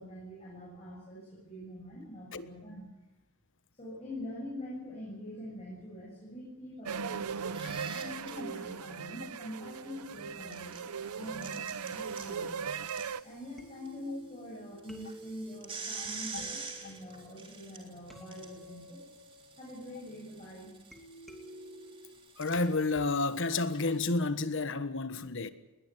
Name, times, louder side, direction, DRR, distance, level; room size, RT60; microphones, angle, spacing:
voice 1, 0.0-2.9 3.8-10.8 11.1-12.6 13.2-19.0 19.6-20.7, left 1 dB, 30° left, 7.9 m, -44 dB
sound 1, 6.9-13.2, right 6 dB, 90° right, 0.7 m, -38 dB
sound 2, 7.3-8.3 10.2-13.9 14.2-14.3 14.8-24.0, right 5 dB, 25° right, 3.4 m, -47 dB
sound 3, 13.3-13.4 13.6-20.3 20.9-22.2, equal, ahead, 2.9 m, -52 dB
voice 2, 22.4-25.5, left 3 dB, 60° left, 1.4 m, -30 dB
21.0 x 19.5 x 9.4 m
head